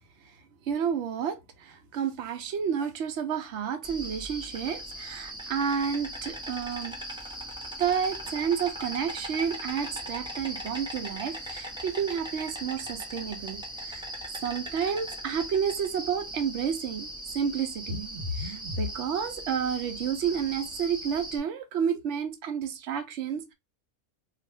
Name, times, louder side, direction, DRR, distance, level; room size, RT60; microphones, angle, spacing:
voice 1, 0.7-6.9 7.8-14.0 14.4-17.1 17.3-23.5, right 7 dB, 60° right, 0.9 m, -30 dB
Insect, 3.8-21.4, right 1 dB, 5° right, 0.5 m, -39 dB
2.7 x 2.4 x 3.2 m
omnidirectional pair, 1.5 m